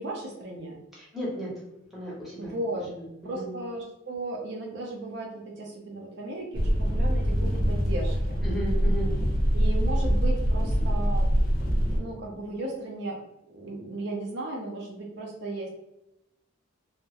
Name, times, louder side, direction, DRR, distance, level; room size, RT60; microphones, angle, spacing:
voice 1, 0.0-0.8 2.4-2.9 3.2-8.4 9.5-11.3 11.9-13.2 13.5-15.7, right 2 dB, 55° right, 0 dB, 0.4 m, -35 dB
voice 2, 0.9-1.5 1.9-3.6 8.4-9.1, equal, ahead, -7 dB, 0.7 m, -36 dB
sound 1, 6.5-12.0, equal, 45° left, 0.4 m, -24 dB
2.2 x 2.0 x 2.7 m, 0.88 s
head